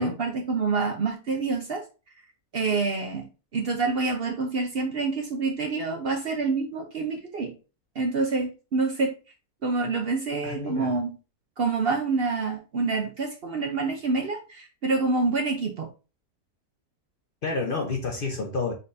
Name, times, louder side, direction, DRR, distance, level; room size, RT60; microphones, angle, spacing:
voice 1, 0.0-1.8 2.5-7.5 8.0-9.1 9.6-11.1 11.6-15.9, right 4 dB, 55° right, 0.7 m, -27 dB
voice 2, 10.4-10.9 17.4-18.7, left 4 dB, 50° left, 0.7 m, -29 dB
4.3 x 4.0 x 2.6 m
omnidirectional pair, 1.6 m